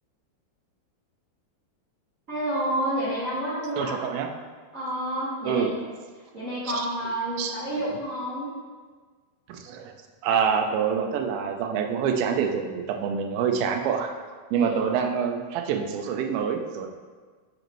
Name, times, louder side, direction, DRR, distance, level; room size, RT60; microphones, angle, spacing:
voice 1, 2.3-4.0 4.7-5.7 6.3-8.5 14.5-14.8, right 1 dB, 30° right, -11 dB, 1.5 m, -29 dB
voice 2, 3.8-4.3 5.4-5.7 6.7-6.9 7.4-7.6 9.5-9.9 10.2-14.1 14.5-16.9, right 7 dB, 80° right, 4 dB, 2.3 m, -26 dB
7.9 x 5.1 x 3.0 m, 1.5 s
omnidirectional pair, 4.5 m